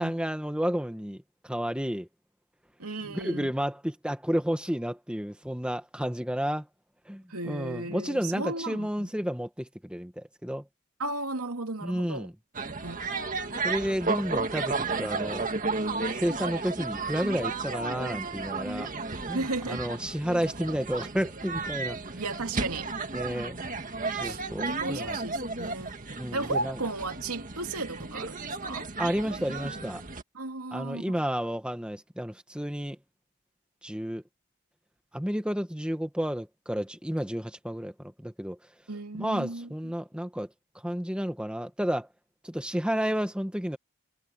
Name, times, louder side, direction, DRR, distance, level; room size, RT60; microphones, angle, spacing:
voice 1, 0.0-2.1 3.0-6.7 7.0-10.7 11.8-12.3 13.6-15.5 15.9-18.9 19.3-22.2 23.1-23.6 24.2-25.2 26.2-26.8 29.0-30.0 30.7-33.0 33.8-34.2 35.1-38.6 39.2-40.5 40.7-42.1 42.4-43.8, equal, 5° right, 1.4 m, -31 dB
voice 2, 2.8-3.5 7.3-9.1 11.0-12.3 12.8-13.7 19.3-19.8 22.2-22.9 24.2-26.0 26.3-28.9 30.3-31.2 38.9-39.7, right 2 dB, 90° right, 2.8 m, -35 dB
sound 1, 12.5-30.2, right 3 dB, 35° right, 2.0 m, -33 dB
head